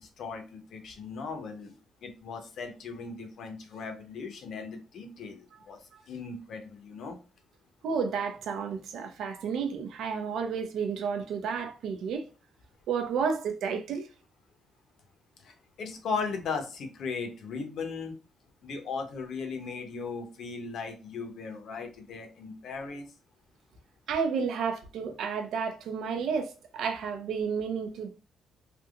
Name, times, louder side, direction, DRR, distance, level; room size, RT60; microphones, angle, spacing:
voice 1, 0.0-1.7 2.0-5.8 6.1-7.2 15.4-18.1 18.6-23.0, left 4 dB, 60° left, 0.9 m, -37 dB
voice 2, 7.8-12.3 12.9-14.1 24.1-28.1, right 6 dB, 70° right, 0.6 m, -31 dB
3.4 x 2.9 x 2.4 m
cardioid pair, 155°, 0 cm